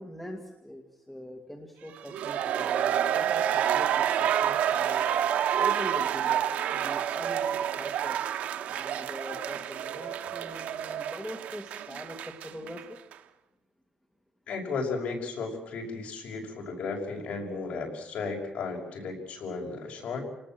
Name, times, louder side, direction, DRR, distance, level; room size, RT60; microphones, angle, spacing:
voice 1, 0.0-5.1 5.6-6.4 6.7-8.2 8.7-12.8, equal, 5° left, 3 dB, 2.0 m, -43 dB
sound 1, 2.0-12.8 13.1-13.2, right 9 dB, 80° right, 1.2 m, -28 dB
voice 2, 14.5-20.2, left 4 dB, 60° left, 1 dB, 5.8 m, -34 dB
29.0 x 19.0 x 7.6 m, 0.89 s
cardioid pair, 165°, 3 cm